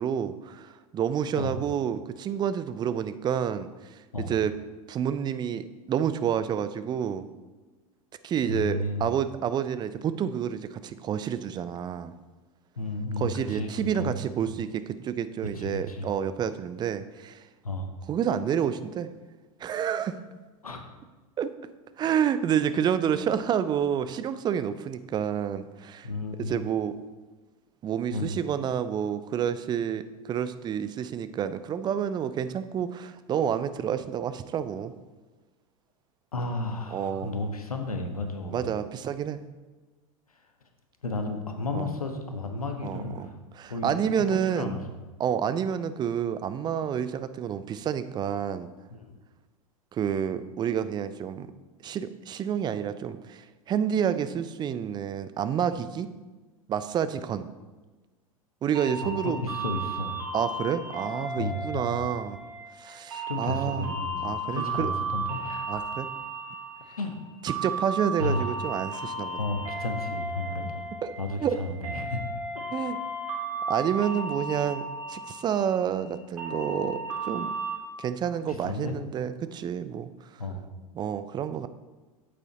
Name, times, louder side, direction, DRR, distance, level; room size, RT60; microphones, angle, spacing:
voice 1, 0.0-3.7 4.3-4.5 4.9-7.3 8.2-12.1 13.2-17.4 18.1-19.1 19.6-20.2 21.4-21.5 22.0-26.1 26.4-26.9 27.8-34.9 36.9-37.3 38.5-39.4 41.7-41.9 42.8-43.3 43.5-44.8 45.2-48.7 49.9-51.5 51.8-56.1 56.7-57.5 58.6-59.4 60.3-62.4 62.8-63.9 64.2-64.9 65.7-66.1 67.4-69.4 71.0-71.1 71.4-71.6 72.7-73.0 73.7-77.5 78.0-80.1 80.9-81.7, right 8 dB, 25° right, 13 dB, 0.5 m, -29 dB
voice 2, 8.5-9.2 12.8-14.2 14.4-14.5 15.5-16.1 17.6-17.9 20.6-20.9 26.0-26.6 28.1-28.3 36.3-38.8 41.0-43.4 43.6-44.8 48.9-49.2 59.0-60.2 61.4-62.0 63.3-65.8 67.0-67.2 68.2-68.6 69.3-70.9 71.2-72.2 72.5-72.6 78.5-79.0 80.4-80.7, left 2 dB, 85° left, 5 dB, 1.2 m, -33 dB
sound 1, 58.7-77.8, right 2 dB, 70° right, 2.5 m, -35 dB
8.4 x 8.3 x 4.1 m, 1.2 s
figure-of-eight pair, 90°, 18 cm